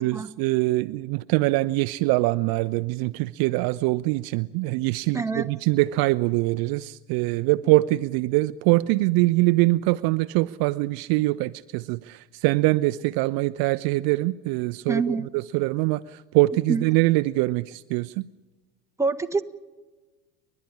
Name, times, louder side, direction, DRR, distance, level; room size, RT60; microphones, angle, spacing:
voice 1, 0.0-18.3, right 20 dB, 50° right, 15 dB, 0.6 m, -23 dB
voice 2, 5.1-5.5 14.9-15.3 16.7-16.8 19.0-19.4, right 4 dB, 5° right, 6 dB, 1.3 m, -26 dB
29.5 x 12.0 x 9.9 m, 1.2 s
hypercardioid pair, 90°, 48 cm